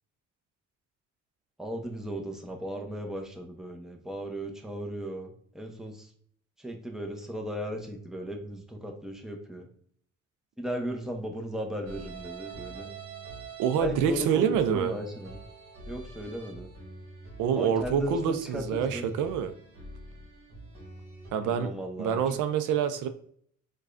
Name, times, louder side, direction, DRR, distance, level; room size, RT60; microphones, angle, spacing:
voice 1, 1.6-6.1 6.6-9.7 10.6-12.9 13.8-15.4 15.9-16.7 17.5-19.1 21.4-22.4, equal, ahead, 2 dB, 0.6 m, -36 dB
sound 1, 11.8-21.3, right 3 dB, 50° right, 1.2 m, -45 dB
voice 2, 13.6-14.9 17.4-19.5 21.3-21.7 22.0-23.1, right 7 dB, 90° right, 9 dB, 0.4 m, -26 dB
4.6 x 2.3 x 2.5 m, 0.62 s
cardioid pair, 90°, 30 cm